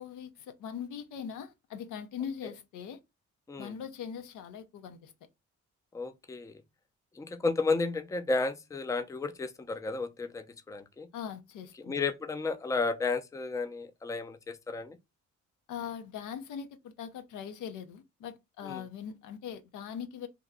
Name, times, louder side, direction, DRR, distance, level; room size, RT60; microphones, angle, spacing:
voice 1, 0.0-3.0 3.6-5.1 11.1-12.0 15.7-20.3, left 8 dB, 85° left, 0.7 m, -41 dB
voice 2, 5.9-6.5 7.2-11.1 11.9-15.0 18.6-18.8, left 3 dB, 10° left, 0.4 m, -32 dB
3.0 x 2.2 x 3.7 m
cardioid pair, 90°, 30 cm